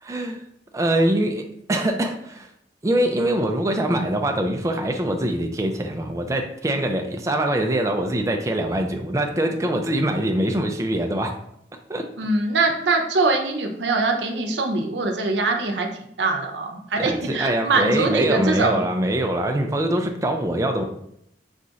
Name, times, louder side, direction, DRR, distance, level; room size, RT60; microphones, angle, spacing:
voice 1, 0.0-0.4 0.7-2.5 2.8-11.4 11.9-12.0 17.0-20.8, right 1 dB, 20° right, 4 dB, 0.3 m, -23 dB
voice 2, 12.2-15.9 16.2-18.8, right 3 dB, 80° right, 3 dB, 0.7 m, -22 dB
4.1 x 2.4 x 3.9 m, 0.75 s
head